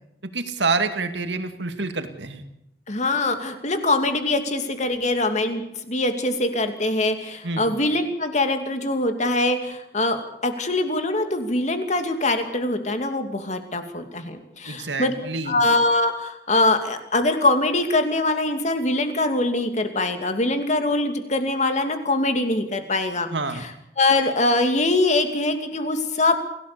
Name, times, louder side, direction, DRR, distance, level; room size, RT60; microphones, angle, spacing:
voice 1, 0.2-2.4 3.1-3.2 7.4-7.7 14.7-15.6 23.3-23.6, right 3 dB, 80° right, 8 dB, 2.3 m, -27 dB
voice 2, 2.9-15.1 15.5-23.3 24.0-26.4, left 2 dB, 40° left, 7 dB, 2.7 m, -23 dB
27.5 x 17.0 x 6.9 m, 0.82 s
head